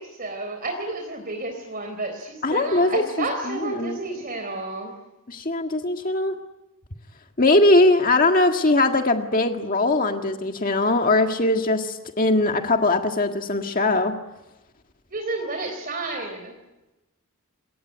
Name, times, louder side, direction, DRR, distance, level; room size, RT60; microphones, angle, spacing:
voice 1, 0.0-5.0 15.1-16.6, right 2 dB, 40° right, 5 dB, 3.9 m, -31 dB
voice 2, 2.4-3.0 3.8-4.0 5.3-6.3 7.4-14.2, left 2 dB, 40° left, 4 dB, 1.8 m, -20 dB
28.0 x 22.5 x 9.4 m, 1.0 s
head